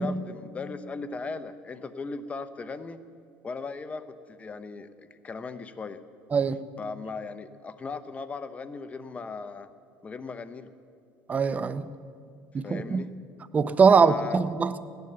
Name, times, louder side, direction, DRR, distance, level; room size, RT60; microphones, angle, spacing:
voice 1, 0.0-3.0 3.4-6.0 6.8-9.7 10.0-10.7 12.6-13.1 14.0-14.4, left 4 dB, 25° left, 11 dB, 0.8 m, -37 dB
voice 2, 11.3-11.9 12.5-13.1 13.5-14.8, right 5 dB, 30° right, 14 dB, 0.6 m, -22 dB
16.0 x 10.5 x 6.8 m, 2.3 s
supercardioid pair, 100°, 5 cm